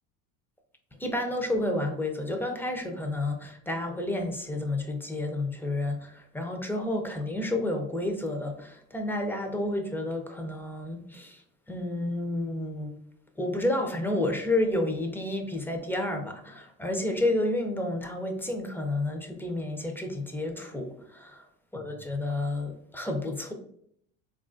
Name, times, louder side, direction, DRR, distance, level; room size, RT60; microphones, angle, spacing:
voice 1, 1.0-13.0 13.4-21.5 21.7-23.5, left 1 dB, 5° left, 4 dB, 0.4 m, -30 dB
3.7 x 2.4 x 2.4 m, 0.69 s
supercardioid pair, 90°, 40 cm